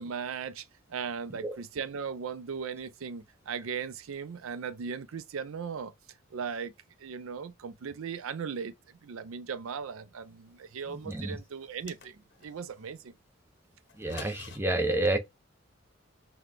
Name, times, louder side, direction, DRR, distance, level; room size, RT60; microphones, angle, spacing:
voice 1, 0.0-5.9 6.3-6.7 7.0-8.7 9.0-13.1, right 6 dB, 80° right, 0.4 m, -38 dB
voice 2, 10.9-11.4 14.0-15.2, right 2 dB, 10° right, 0.5 m, -29 dB
sound 1, 11.6-12.5 13.9-14.6, left 5 dB, 55° left, 0.8 m, -46 dB
5.7 x 2.3 x 3.3 m
head